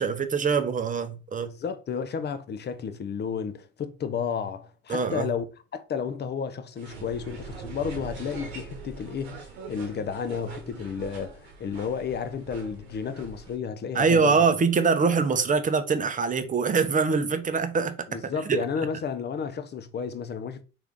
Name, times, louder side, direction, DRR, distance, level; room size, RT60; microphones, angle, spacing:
voice 1, 0.0-1.5 4.9-5.3 13.9-18.0 18.5-18.6, right 5 dB, 25° right, 0.6 m, -23 dB
voice 2, 1.4-5.4 5.7-14.4 18.1-20.6, left 6 dB, 35° left, 0.6 m, -32 dB
sound 1, 6.8-13.6, right 5 dB, 85° right, 1.0 m, -42 dB
3.3 x 2.6 x 3.6 m
hypercardioid pair, 60°, 31 cm